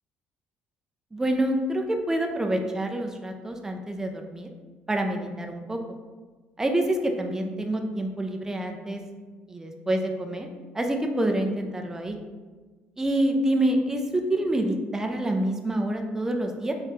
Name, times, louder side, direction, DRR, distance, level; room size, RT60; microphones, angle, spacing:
voice 1, 1.1-4.5 4.9-5.8 6.6-9.0 9.5-10.5 10.7-12.2 13.0-16.7, right 1 dB, 15° right, 4 dB, 0.4 m, -27 dB
3.3 x 3.1 x 2.9 m, 1.4 s
cardioid pair, 105°, 4 cm